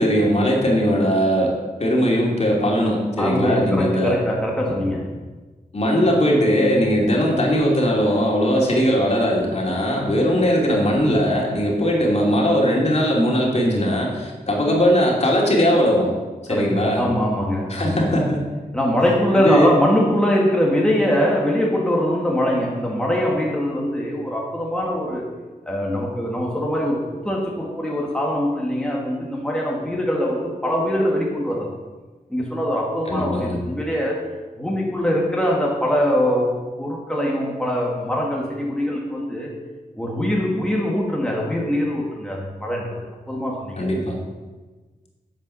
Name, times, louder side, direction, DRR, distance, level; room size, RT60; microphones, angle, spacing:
voice 1, 0.0-1.5 1.8-4.2 5.7-16.1 16.5-17.0 17.7-18.5 19.3-19.7 33.1-33.6 43.8-44.2, equal, 45° left, -2 dB, 2.8 m, -19 dB
voice 2, 3.2-5.1 16.5-18.2 18.7-25.3 25.7-31.7 32.3-34.3 34.6-39.5 40.0-43.8, equal, 5° left, -3 dB, 1.8 m, -22 dB
9.2 x 7.8 x 5.7 m, 1.3 s
wide cardioid pair, 75°, 15 cm